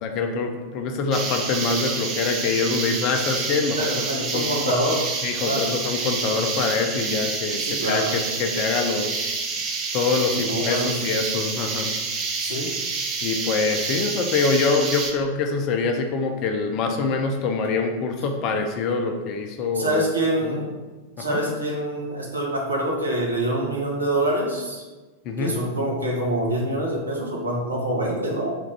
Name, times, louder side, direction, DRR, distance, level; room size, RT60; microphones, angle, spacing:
voice 1, 0.0-4.7 5.2-9.3 9.9-12.0 13.2-20.0 20.4-20.6 21.2-21.4 25.2-25.5, left 4 dB, 40° left, 4 dB, 0.4 m, -25 dB
sound 1, 1.1-15.1, right 4 dB, 35° right, 0.5 m, -28 dB
voice 2, 3.8-5.0 5.4-5.7 7.6-8.1 10.4-10.9 12.4-12.7 19.7-20.7 21.2-24.8 25.4-28.5, right 1 dB, 80° right, -2 dB, 0.8 m, -25 dB
3.3 x 2.4 x 3.2 m, 1.2 s
figure-of-eight pair, 90°, 0 cm